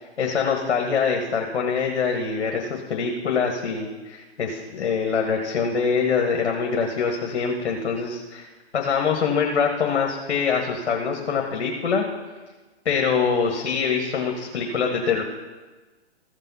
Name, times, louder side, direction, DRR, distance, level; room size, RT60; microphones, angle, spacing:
voice 1, 0.0-12.0 12.8-15.2, left 5 dB, 65° left, 1 dB, 1.5 m, -24 dB
14.5 x 5.5 x 5.6 m, 1.3 s
hypercardioid pair, 135°, 34 cm